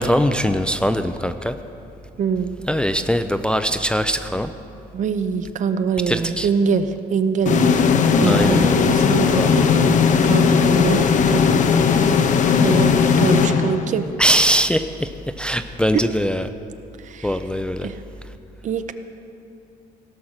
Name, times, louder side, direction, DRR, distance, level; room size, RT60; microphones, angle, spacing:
voice 1, 0.0-1.5 2.7-4.5 6.1-6.5 8.2-8.9 9.3-9.7 14.2-15.1 15.4-16.5 17.2-17.9, equal, 5° left, 8 dB, 0.4 m, -21 dB
voice 2, 2.2-2.6 4.9-11.6 12.6-14.1 15.9-16.0 17.0-17.4 17.8-18.0 18.6-18.9, right 6 dB, 45° right, 10 dB, 0.7 m, -24 dB
sound 1, 7.5-14.2, left 6 dB, 45° left, 0.8 m, -17 dB
17.0 x 5.8 x 6.5 m, 2.7 s
cardioid pair, 110°, 17 cm